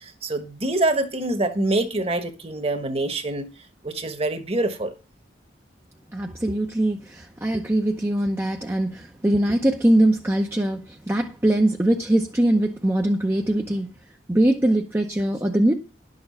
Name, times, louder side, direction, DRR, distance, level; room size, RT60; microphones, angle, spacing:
voice 1, 0.0-3.5 3.8-4.9, right 2 dB, 30° right, 1.3 m, -25 dB
voice 2, 6.1-13.9 14.3-15.7, right 1 dB, 15° right, 0.7 m, -22 dB
11.0 x 6.8 x 5.6 m
head